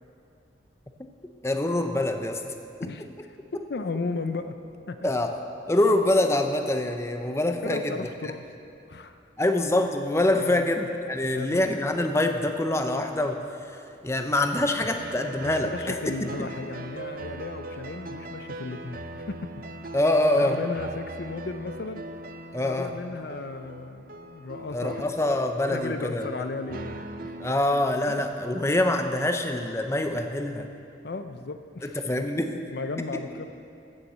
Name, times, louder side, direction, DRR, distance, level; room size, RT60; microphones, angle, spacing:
voice 1, 1.4-2.4 2.8-2.9 5.0-5.3 5.7-8.0 9.4-16.0 19.9-20.6 22.5-22.9 24.7-26.4 27.4-30.7 31.8-32.6 33.1-33.2, left 1 dB, 15° left, 6 dB, 0.6 m, -25 dB
voice 2, 2.8-3.4 3.7-4.6 4.9-5.1 7.6-8.4 8.9-9.2 10.4-10.7 11.3-11.6 15.5-19.5 20.3-22.0 22.6-25.0 25.7-27.3 28.1-28.2 31.0-32.0 32.7-33.5, left 3 dB, 55° left, 9 dB, 0.5 m, -35 dB
sound 1, 15.0-27.5, right 2 dB, 50° right, 0.5 m, -40 dB
14.5 x 7.1 x 7.9 m, 2.6 s
head